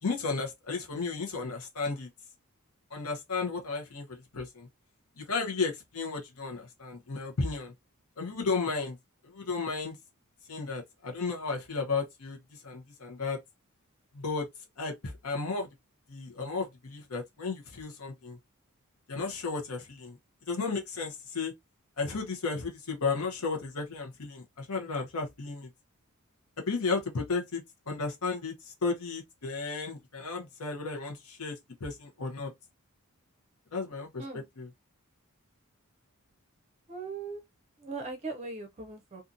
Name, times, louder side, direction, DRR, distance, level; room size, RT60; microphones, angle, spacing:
voice 1, 0.0-2.1 2.9-4.7 5.2-7.7 8.2-9.0 9.2-10.0 10.5-13.4 14.1-14.5 14.8-15.7 16.1-18.4 19.1-21.5 22.0-25.7 26.6-32.5 33.7-34.7, left 4 dB, 85° left, 0.9 m, -34 dB
voice 2, 36.9-37.4 37.8-39.2, right 3 dB, 30° right, 0.5 m, -39 dB
2.7 x 2.5 x 2.5 m
head